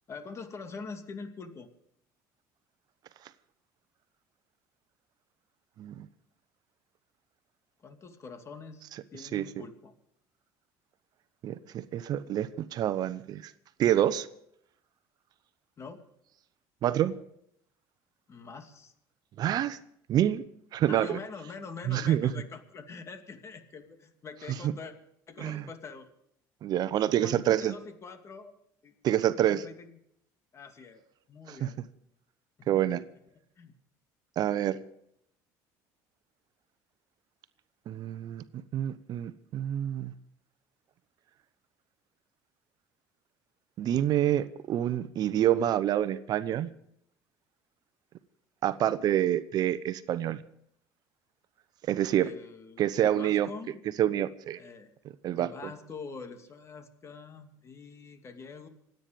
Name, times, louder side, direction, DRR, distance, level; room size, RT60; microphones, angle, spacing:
voice 1, 0.1-1.7 7.8-9.9 15.8-16.1 18.3-18.9 20.9-24.9 25.3-26.1 27.1-28.5 28.8-28.9 29.2-30.0 30.5-31.0 31.3-31.8 32.7-33.2 33.6-33.7 34.4-34.8 52.2-53.8 54.6-54.9 55.3-58.7, left 4 dB, 35° left, 7 dB, 2.5 m, -45 dB
voice 2, 11.4-13.5 13.8-14.3 16.8-17.1 19.4-19.8 20.1-20.4 20.7-21.2 21.9-22.3 25.4-25.6 26.6-27.7 29.0-29.6 31.5-31.7 32.7-33.0 34.4-34.8 37.9-38.4 38.7-40.1 43.8-46.7 48.6-50.4 51.9-52.3 52.8-53.5 54.0-54.6 55.2-55.5, right 11 dB, 55° right, 13 dB, 0.9 m, -27 dB
26.5 x 9.3 x 5.3 m, 0.73 s
supercardioid pair, 105°, 8 cm